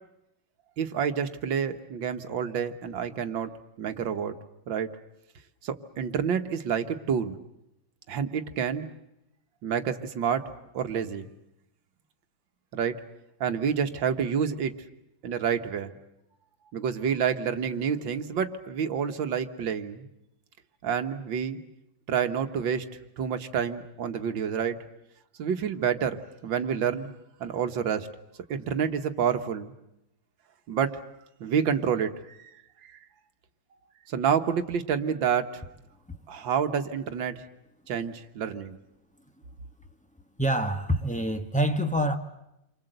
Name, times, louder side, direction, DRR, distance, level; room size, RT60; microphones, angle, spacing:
voice 1, 0.8-3.5 3.8-4.4 4.7-4.9 5.6-7.4 8.1-8.9 9.6-10.5 10.7-11.2 12.7-13.0 13.4-14.7 15.2-15.9 16.7-20.1 20.8-21.6 22.1-22.9 23.2-24.8 25.4-27.1 27.4-28.1 28.5-29.7 30.7-31.0 31.4-32.5 32.8-33.0 34.1-35.6 36.3-37.4 37.9-38.8, right 7 dB, 70° right, 2.0 m, -28 dB
voice 2, 40.4-42.2, right 1 dB, 5° left, 1.1 m, -26 dB
29.0 x 24.5 x 7.9 m
omnidirectional pair, 2.1 m